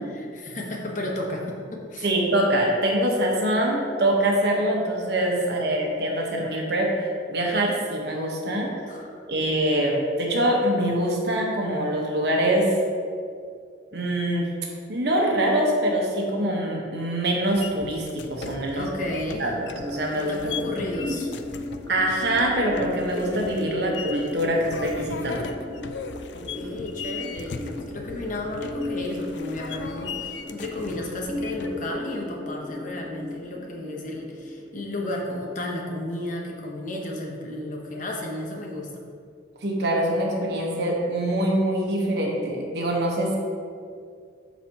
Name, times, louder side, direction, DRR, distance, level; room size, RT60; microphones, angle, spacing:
voice 1, 0.0-2.1 8.9-9.2 18.7-19.5 20.1-21.3 26.3-39.0, left 1 dB, 45° left, 0 dB, 1.0 m, -33 dB
voice 2, 2.0-8.7 9.3-12.7 13.9-14.5 14.9-18.9 19.4-20.3 21.9-25.5 39.6-43.4, right 1 dB, 65° right, -1 dB, 1.2 m, -24 dB
sound 1, 17.5-31.9, left 5 dB, 75° left, 0.4 m, -39 dB
sound 2, 19.7-35.7, left 1 dB, 20° left, 1.4 m, -36 dB
12.5 x 4.2 x 2.9 m, 2.3 s
head